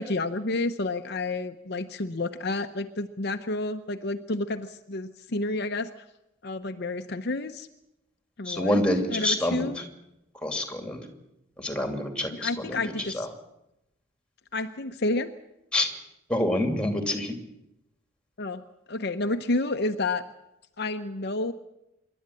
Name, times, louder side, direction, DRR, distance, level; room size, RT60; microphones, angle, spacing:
voice 1, 0.0-6.0 6.4-7.7 8.4-8.8 9.1-9.8 12.3-13.3 14.5-15.3 18.4-18.6 18.9-20.3 20.8-21.5, left 2 dB, 50° left, 7 dB, 0.8 m, -30 dB
voice 2, 8.4-9.8 10.4-11.0 11.6-13.3 15.7-15.9 16.3-17.4, left 1 dB, 5° left, 5 dB, 2.7 m, -27 dB
26.0 x 12.0 x 9.8 m, 0.89 s
head